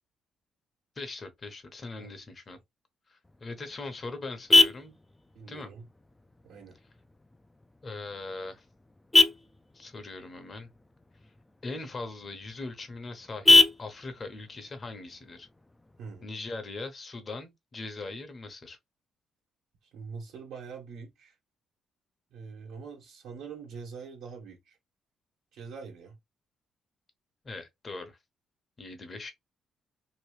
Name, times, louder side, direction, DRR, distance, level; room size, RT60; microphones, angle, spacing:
voice 1, 1.0-2.6 3.1-4.9 5.5-5.7 7.8-8.6 9.7-10.7 11.6-15.5 16.2-18.8 27.4-28.2 28.8-29.3, left 3 dB, 35° left, 1.0 m, -40 dB
Vehicle horn car horn honking, 3.2-16.2, left 2 dB, 15° left, 0.4 m, -28 dB
voice 2, 5.3-5.9 6.4-6.8 16.0-16.3 19.9-21.3 22.3-24.8 25.5-26.1, right 5 dB, 90° right, 1.2 m, -44 dB
3.0 x 2.6 x 3.1 m
cardioid pair, 90°, 0 cm